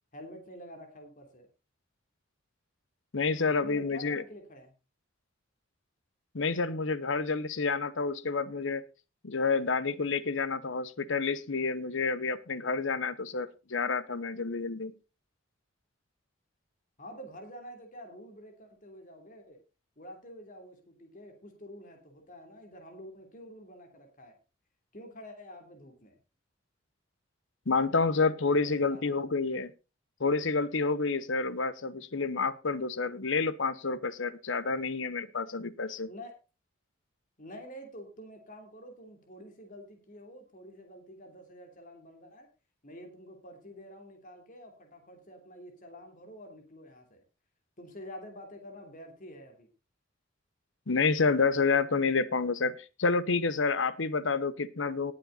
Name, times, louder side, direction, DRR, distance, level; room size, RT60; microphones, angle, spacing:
voice 1, 0.1-1.5 3.5-4.7 17.0-19.6 20.0-24.3 24.9-26.2 28.5-29.1 36.1-36.3 37.4-42.5 42.8-47.2 47.8-49.7, equal, 40° left, 4 dB, 3.0 m, -48 dB
voice 2, 3.1-4.2 6.3-8.8 9.2-14.9 27.7-29.7 30.2-36.1 50.9-55.1, left 4 dB, 70° left, 17 dB, 0.9 m, -29 dB
18.5 x 7.7 x 4.0 m, 0.31 s
head